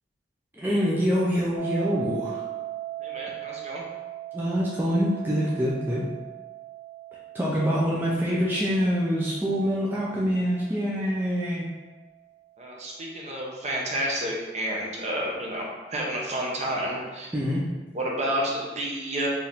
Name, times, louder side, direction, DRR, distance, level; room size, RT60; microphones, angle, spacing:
voice 1, 0.6-2.4 4.3-6.1 7.3-11.6 17.3-17.6, equal, 10° right, -7 dB, 0.5 m, -25 dB
sound 1, 1.6-12.5, right 13 dB, 45° left, 0.7 m, -40 dB
voice 2, 3.0-3.8 12.6-17.3 17.9-19.3, right 1 dB, 40° right, -3 dB, 0.8 m, -30 dB
4.5 x 2.6 x 3.5 m, 1.2 s
head